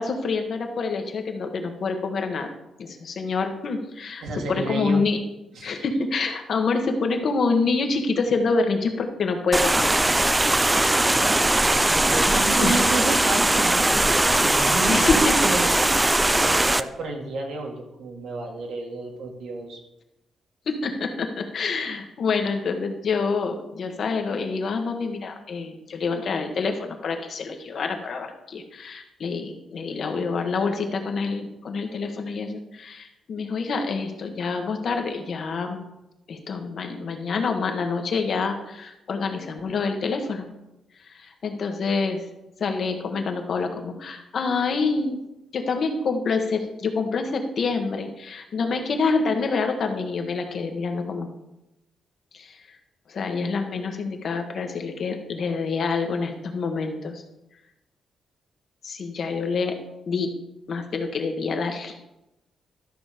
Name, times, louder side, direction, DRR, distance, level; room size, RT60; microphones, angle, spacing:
voice 1, 0.0-2.5 2.8-4.2 4.5-5.2 5.6-9.9 11.7-12.0 12.3-12.9 14.9-15.4 20.7-35.9 36.3-40.5 41.0-42.2 42.6-45.2 45.5-51.3 52.3-52.7 53.1-57.2 58.8-59.8 60.1-60.3 60.7-61.9, left 4 dB, 45° left, 5 dB, 1.2 m, -27 dB
voice 2, 4.2-5.1 5.6-5.8 10.8-15.7 16.2-19.8, right 3 dB, 70° right, 1 dB, 2.0 m, -32 dB
sound 1, 9.5-16.8, right 1 dB, 10° right, 0.3 m, -20 dB
12.5 x 6.0 x 5.0 m, 0.90 s
wide cardioid pair, 165°, 0 cm